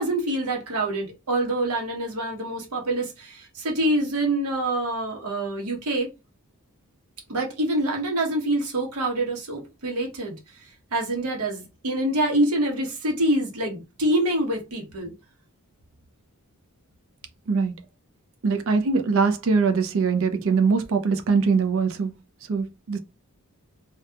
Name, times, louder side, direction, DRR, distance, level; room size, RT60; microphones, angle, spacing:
voice 1, 0.0-6.1 7.3-10.3 10.9-15.1, right 1 dB, 85° right, 0.9 m, -26 dB
voice 2, 18.4-22.1 22.5-23.0, right 4 dB, 60° right, 0.4 m, -22 dB
2.7 x 2.3 x 2.3 m
head